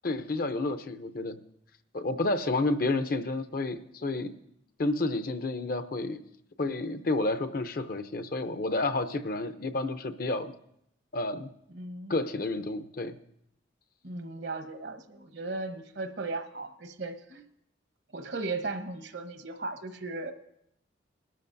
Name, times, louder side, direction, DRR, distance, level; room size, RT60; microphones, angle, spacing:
voice 1, 0.0-1.4 1.9-4.3 4.8-6.2 6.6-10.5 11.1-11.5 12.1-13.2, left 2 dB, 50° left, 9 dB, 0.6 m, -30 dB
voice 2, 11.7-12.1 14.0-17.4 18.1-20.3, right 3 dB, 65° right, 8 dB, 1.0 m, -36 dB
21.0 x 12.5 x 2.6 m, 0.75 s
head